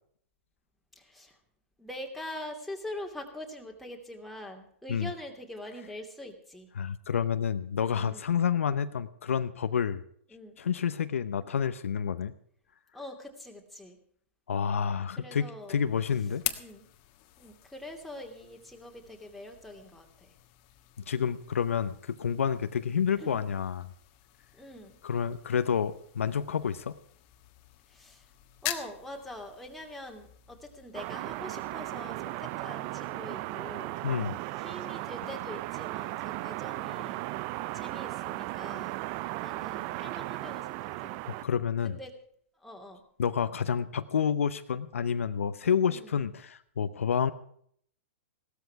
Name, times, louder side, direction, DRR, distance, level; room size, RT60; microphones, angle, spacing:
voice 1, 1.0-1.4 1.8-6.7 7.8-8.3 10.3-10.6 12.9-14.0 15.2-15.8 16.6-16.9 17.4-20.3 23.2-23.4 24.5-25.0 27.9-28.3 28.6-34.0 34.6-37.2 37.7-39.0 39.4-41.2 41.8-42.1 42.6-43.0 45.9-46.2, left 1 dB, ahead, 1 dB, 2.7 m, -44 dB
voice 2, 6.8-10.0 10.6-12.3 14.5-16.4 21.1-23.9 25.0-27.0 34.0-34.4 41.4-42.0 43.2-47.3, left 7 dB, 80° left, 11 dB, 0.8 m, -29 dB
sound 1, 15.6-32.5, left 14 dB, 45° left, 1.5 m, -45 dB
sound 2, 30.9-41.4, right 18 dB, 40° right, 0.5 m, -36 dB
16.5 x 13.0 x 4.7 m, 0.64 s
hypercardioid pair, 120°, 7 cm